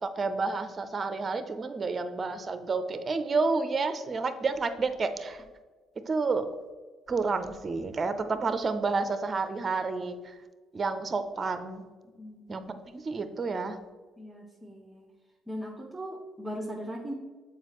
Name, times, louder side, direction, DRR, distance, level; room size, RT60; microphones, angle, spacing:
voice 1, 0.0-5.4 6.1-6.5 7.1-10.4 10.7-11.8 12.5-13.8, right 4 dB, 40° right, 10 dB, 0.6 m, -30 dB
voice 2, 12.0-12.4 14.2-15.1 15.5-17.1, equal, 10° right, -2 dB, 1.0 m, -39 dB
7.3 x 4.8 x 3.1 m, 1.4 s
supercardioid pair, 70°, 0 cm